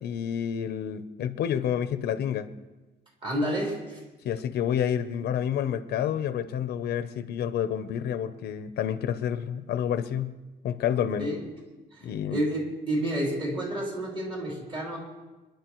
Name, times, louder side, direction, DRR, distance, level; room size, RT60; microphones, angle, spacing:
voice 1, 0.0-2.5 4.2-10.4 10.6-11.3 12.0-12.4, left 9 dB, 75° left, 11 dB, 0.7 m, -29 dB
voice 2, 3.2-4.0 11.2-11.5 11.9-15.0, right 1 dB, 30° right, -2 dB, 3.3 m, -30 dB
26.5 x 10.5 x 3.1 m, 1.2 s
cardioid pair, 175°, 17 cm